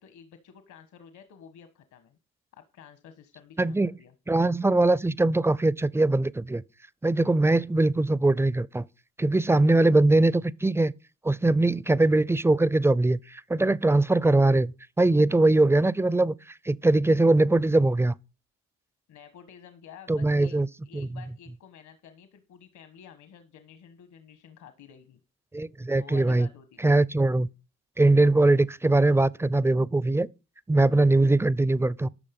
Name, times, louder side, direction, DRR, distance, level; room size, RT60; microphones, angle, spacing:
voice 1, 0.0-2.2 2.5-4.1 19.1-20.6 20.8-25.2 26.0-27.0, left 8 dB, 75° left, 1.5 m, -50 dB
voice 2, 3.6-3.9 4.3-6.6 7.0-8.8 9.2-10.9 11.2-16.3 16.7-18.1 20.1-20.7 20.9-21.1 25.5-26.5 26.8-27.5 28.0-30.3 30.7-32.1, right 2 dB, 10° right, 0.4 m, -21 dB
12.0 x 6.8 x 5.4 m
cardioid pair, 90°, 30 cm